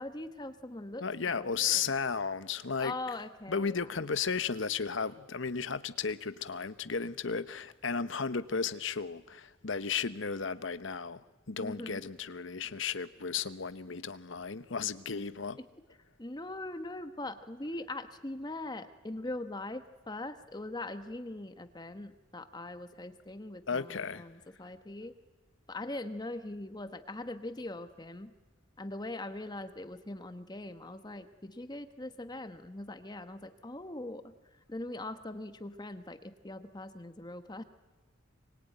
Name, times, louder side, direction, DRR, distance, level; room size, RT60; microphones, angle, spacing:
voice 1, 0.0-1.1 1.4-1.8 2.8-3.9 11.6-12.0 15.6-15.7 16.2-25.1 25.7-28.3 28.8-34.3 34.7-37.6, left 2 dB, 20° left, 1.2 m, -41 dB
voice 2, 1.0-2.9 3.5-15.6 23.7-24.2, left 5 dB, 70° left, 1.0 m, -34 dB
25.5 x 24.0 x 9.2 m
head